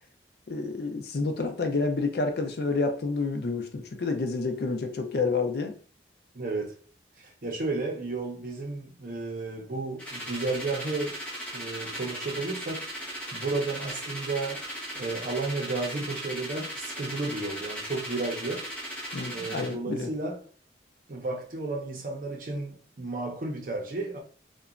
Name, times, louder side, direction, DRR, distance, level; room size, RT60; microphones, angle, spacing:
voice 1, 0.5-5.7 19.1-20.1, left 3 dB, 60° left, 0.4 m, -29 dB
voice 2, 6.3-6.7 7.2-11.2 11.5-14.6 14.9-18.6 19.3-20.4 21.1-24.2, right 3 dB, 50° right, 0.6 m, -33 dB
sound 1, 10.0-19.7, right 1 dB, 10° left, 0.6 m, -37 dB
2.8 x 2.2 x 2.4 m
head